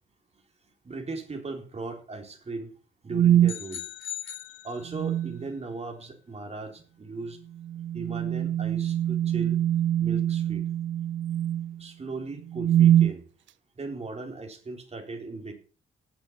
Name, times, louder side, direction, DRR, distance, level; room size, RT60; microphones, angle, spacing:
voice 1, 0.8-2.7 3.0-3.8 4.6-7.4 7.9-9.6 10.0-10.6 11.8-13.2 13.8-15.5, right 3 dB, 35° right, 4 dB, 4.0 m, -37 dB
sound 1, 3.1-3.6 4.9-5.4 7.6-11.8 12.5-13.2, right 11 dB, 80° right, 0.7 m, -24 dB
sound 2, 3.5-5.3, left 12 dB, 85° left, 2.7 m, -39 dB
17.5 x 6.7 x 7.3 m, 0.41 s
cardioid pair, 105°, 19 cm